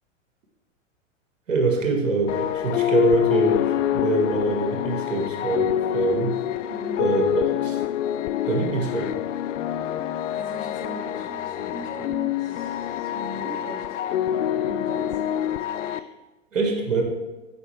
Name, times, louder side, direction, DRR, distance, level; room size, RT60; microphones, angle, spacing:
voice 1, 1.5-3.6 3.9-6.3 7.0-7.3 7.6-7.8 8.5-9.1 15.9-16.0 16.5-17.0, right 3 dB, 85° right, 1 dB, 1.9 m, -24 dB
sound 1, 2.3-16.0, left 11 dB, 75° left, 0.5 m, -26 dB
voice 2, 6.7-7.1 10.3-14.0 14.6-15.2, right 1 dB, 40° right, 1 dB, 1.9 m, -39 dB
8.0 x 5.4 x 3.3 m, 1.1 s
hypercardioid pair, 110°, 38 cm